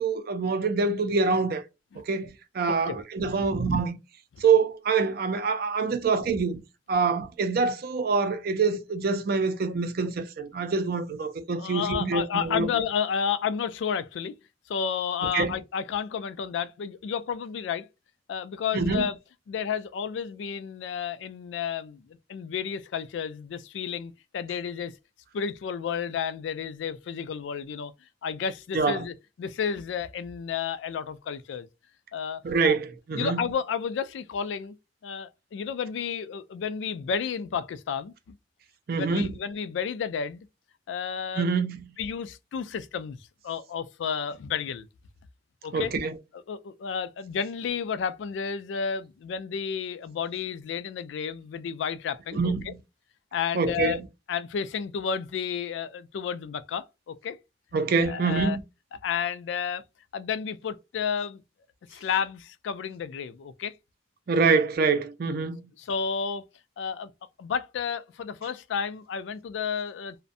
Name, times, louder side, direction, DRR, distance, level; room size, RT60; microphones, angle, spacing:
voice 1, 0.0-1.6 2.1-4.0 4.4-6.6 6.9-12.7 15.3-15.5 18.7-19.1 28.7-29.0 32.4-33.4 38.9-39.3 41.4-41.9 45.7-46.2 52.3-52.8 53.5-54.0 57.7-58.6 64.3-65.7, right 4 dB, 55° right, 0.4 m, -25 dB
voice 2, 11.6-14.4 14.7-17.9 18.3-19.2 19.5-24.9 25.3-27.9 28.2-31.7 32.1-32.8 33.1-34.8 35.0-38.4 38.9-40.5 40.9-41.5 42.0-43.2 43.4-44.9 45.6-45.9 46.3-52.7 53.3-54.0 54.3-57.4 58.0-58.6 59.0-59.8 60.1-61.4 61.9-63.7 65.8-66.4 66.8-67.1 67.4-70.2, left 7 dB, 85° left, 0.3 m, -31 dB
2.5 x 2.1 x 2.5 m
head